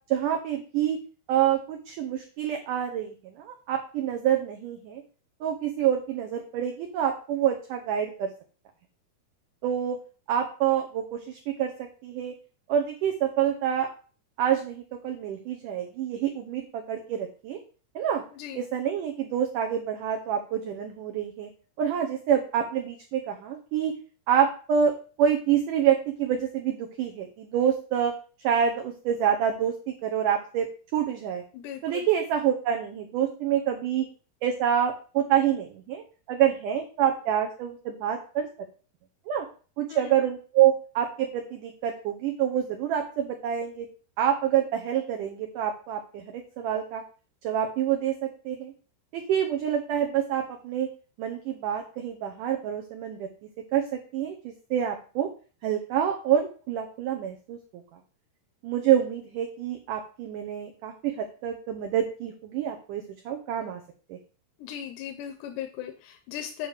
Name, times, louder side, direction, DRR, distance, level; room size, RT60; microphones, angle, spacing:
voice 1, 0.1-1.0 1.3-5.0 5.4-8.3 9.6-10.0 10.3-12.3 12.7-13.9 14.4-17.6 18.0-18.2 18.6-21.5 21.8-23.9 24.3-24.9 25.2-28.1 28.4-29.7 30.0-30.7 30.9-31.4 31.8-34.0 34.4-36.0 36.3-38.5 39.3-39.5 39.8-43.9 44.2-47.0 47.4-48.1 48.5-48.7 49.1-50.9 51.2-53.3 53.7-53.8 54.1-55.3 55.6-57.6 58.6-63.8 64.1-64.2, right 9 dB, 90° right, 3 dB, 1.8 m, -27 dB
voice 2, 31.5-32.1 39.9-40.2 64.6-66.7, left 10 dB, 85° left, 7 dB, 2.8 m, -38 dB
8.5 x 3.4 x 6.3 m, 0.38 s
omnidirectional pair, 4.7 m